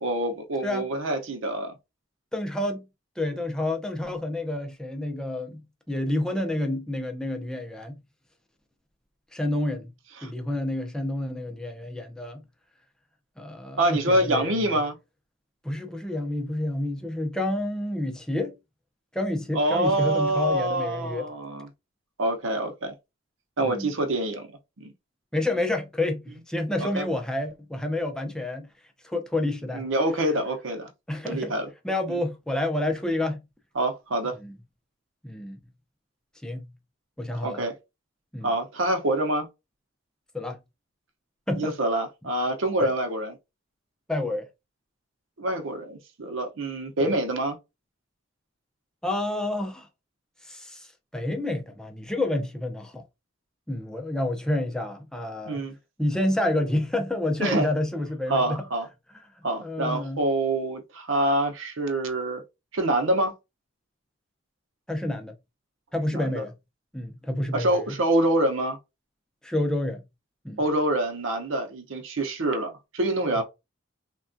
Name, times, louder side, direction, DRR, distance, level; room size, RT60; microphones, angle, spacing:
voice 1, 0.0-1.8 10.2-10.3 13.8-15.0 19.5-21.7 22.2-22.9 23.6-24.5 24.8-24.9 26.8-27.1 29.7-30.9 31.3-31.7 32.1-32.2 33.7-34.4 37.4-37.8 38.4-39.5 41.6-43.4 45.4-47.6 55.5-55.7 57.4-57.7 58.3-58.9 59.4-62.4 62.7-63.3 66.1-66.4 67.5-68.8 70.6-73.4, right 1 dB, 75° right, 0.7 m, -26 dB
voice 2, 2.3-2.9 3.2-8.0 9.3-9.9 10.2-12.4 13.4-14.8 15.6-18.5 19.1-21.3 23.6-23.9 25.3-28.7 29.0-29.8 31.1-31.5 31.8-33.4 34.4-34.5 35.2-35.6 36.4-36.7 37.2-37.6 38.3-38.5 40.3-40.6 41.5-41.7 42.8-42.9 44.1-44.5 47.0-47.1 49.0-49.9 50.4-50.9 51.1-53.0 53.7-55.6 56.0-58.7 59.6-60.2 64.9-65.3 65.9-66.5 66.9-67.8 69.4-70.0 70.4-70.6, left 1 dB, 5° left, 0.5 m, -29 dB
3.4 x 2.2 x 2.5 m
head